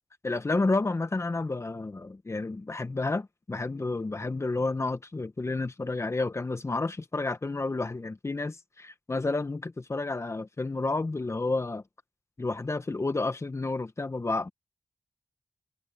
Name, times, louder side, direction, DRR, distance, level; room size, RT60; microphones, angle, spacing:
voice 1, 0.2-11.8 12.4-14.5, left 3 dB, 35° left, 1.4 m, -30 dB
cardioid pair, 45°, 8 cm